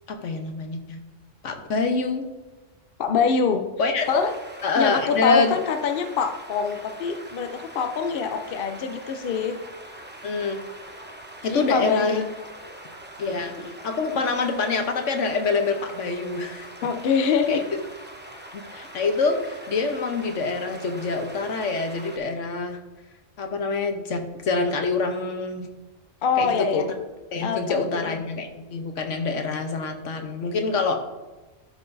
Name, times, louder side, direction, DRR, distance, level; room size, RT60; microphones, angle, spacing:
voice 1, 0.1-1.0 1.4-2.2 3.8-4.3 4.6-5.5 10.2-10.6 11.4-12.2 13.2-16.7 17.5-17.8 18.5-22.8 23.4-25.7 26.4-26.8 27.3-31.0, left 4 dB, 75° left, 5 dB, 1.2 m, -26 dB
voice 2, 3.0-3.6 4.1-4.3 4.7-9.6 11.5-12.3 16.8-17.6 26.2-26.9 27.4-28.2, left 6 dB, 55° left, 7 dB, 0.7 m, -25 dB
sound 1, 4.0-22.2, right 1 dB, 10° right, 0.7 m, -43 dB
12.0 x 5.8 x 2.6 m, 1.2 s
omnidirectional pair, 1.3 m